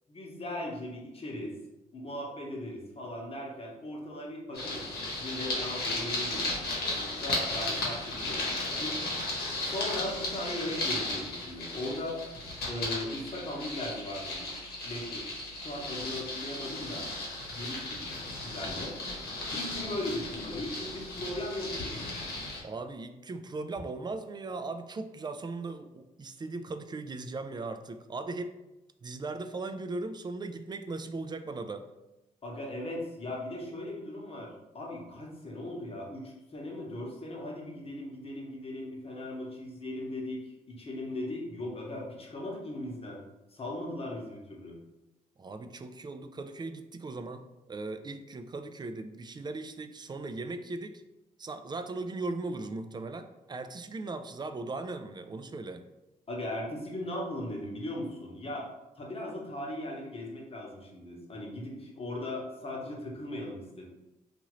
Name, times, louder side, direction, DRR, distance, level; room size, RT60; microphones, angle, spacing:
voice 1, 0.1-1.5 1.9-4.9 5.2-6.5 6.9-9.0 9.6-12.2 12.7-14.4 14.8-17.1 17.5-18.9 19.5-22.1 32.4-43.2 43.5-44.8 56.3-58.7 59.0-63.9, left 1 dB, 35° left, -1 dB, 1.0 m, -38 dB
sound 1, 4.5-22.6, left 2 dB, 80° left, 0.9 m, -35 dB
voice 2, 22.6-28.6 29.0-31.9 45.4-51.0 51.4-55.8, right 3 dB, 25° right, 9 dB, 0.3 m, -38 dB
2.7 x 2.5 x 3.0 m, 0.97 s
supercardioid pair, 55°, 16 cm